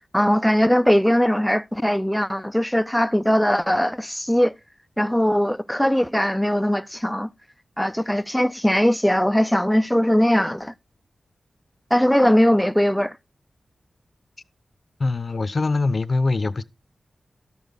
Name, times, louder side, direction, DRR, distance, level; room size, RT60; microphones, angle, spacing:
voice 1, 0.1-4.6 5.0-7.3 7.8-10.7 11.9-13.2, equal, 5° left, 0.5 m, -20 dB
voice 2, 15.0-16.6, left 3 dB, 50° left, 0.7 m, -23 dB
12.5 x 7.1 x 4.0 m
cardioid pair, 65°, 0 cm